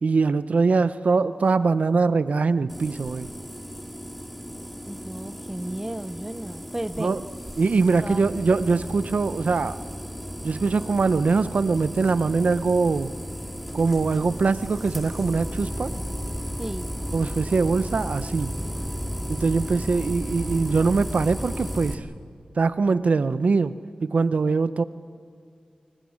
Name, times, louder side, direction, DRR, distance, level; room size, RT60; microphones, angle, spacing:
voice 1, 0.0-3.3 7.0-7.2 7.6-9.8 10.4-13.1 13.7-15.9 17.1-18.6 19.3-22.1 22.6-24.8, right 4 dB, 65° right, 14 dB, 0.7 m, -22 dB
sound 1, 2.7-22.0, equal, ahead, 2.3 m, -34 dB
voice 2, 4.8-7.2 8.0-8.2 16.6-16.9, right 1 dB, 15° right, 14 dB, 0.6 m, -34 dB
28.5 x 22.5 x 6.4 m, 2.4 s
wide cardioid pair, 65°, 3 cm